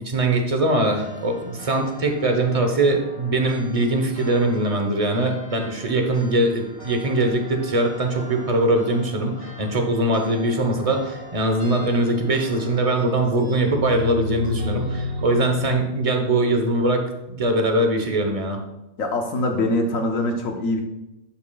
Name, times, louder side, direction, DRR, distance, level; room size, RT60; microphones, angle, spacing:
voice 1, 0.0-18.6, right 1 dB, 30° right, 4 dB, 0.9 m, -22 dB
sound 1, 0.6-12.8, left 1 dB, 50° left, 2.9 m, -42 dB
sound 2, 11.8-15.8, left 2 dB, 80° right, 1.5 m, -31 dB
voice 2, 19.0-20.8, left 2 dB, 80° left, 3 dB, 1.4 m, -23 dB
11.0 x 5.9 x 2.3 m, 0.93 s
omnidirectional pair, 1.4 m